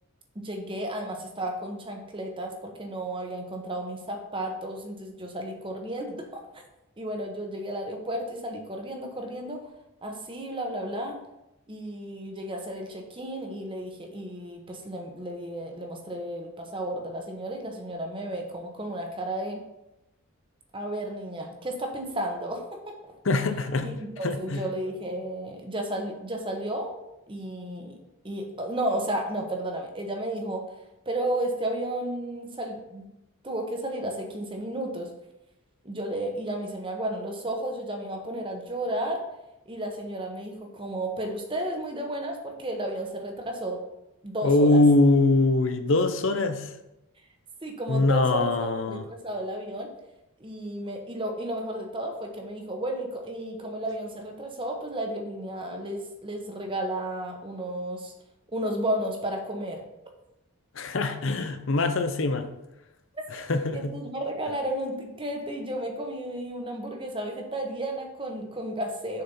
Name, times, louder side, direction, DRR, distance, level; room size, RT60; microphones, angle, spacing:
voice 1, 0.3-6.6 7.0-9.6 10.0-11.2 11.7-19.6 20.7-22.9 23.3-23.4 23.8-27.0 27.3-28.0 28.2-30.6 31.1-33.1 33.4-35.1 35.8-39.2 39.7-43.8 44.2-44.8 47.6-49.9 50.4-58.1 58.5-59.8 63.1-63.2 63.7-69.2, right 1 dB, 25° right, 1.0 m, -33 dB
voice 2, 23.2-23.9 24.2-24.6 44.4-46.7 47.9-49.0 60.7-62.5 63.3-63.9, left 2 dB, 60° left, 0.7 m, -23 dB
6.6 x 4.3 x 5.4 m
head